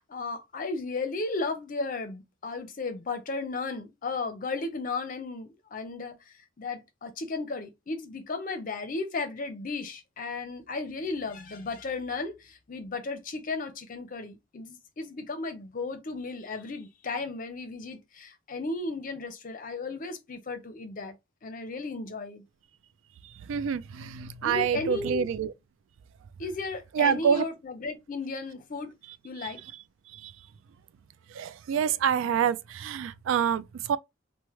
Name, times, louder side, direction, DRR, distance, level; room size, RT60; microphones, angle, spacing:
voice 1, 0.0-21.1 21.4-22.4 24.4-25.3 26.4-28.9 29.2-29.6, left 3 dB, 45° left, 0.6 m, -35 dB
voice 2, 23.5-25.5 26.9-27.4 30.1-30.3 31.3-34.0, right 7 dB, 75° right, 0.3 m, -27 dB
3.1 x 2.1 x 3.0 m
head